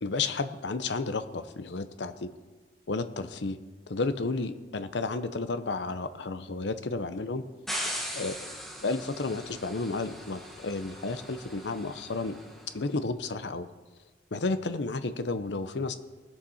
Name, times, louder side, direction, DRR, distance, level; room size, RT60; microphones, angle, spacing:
voice 1, 0.0-2.3 2.9-3.6 3.9-7.4 8.1-8.5 8.8-12.4 12.7-13.7 14.3-16.0, left 3 dB, 70° left, 11 dB, 0.7 m, -32 dB
sound 1, 7.7-12.8, equal, ahead, 1.5 m, -39 dB
20.0 x 7.3 x 4.2 m, 1.3 s
head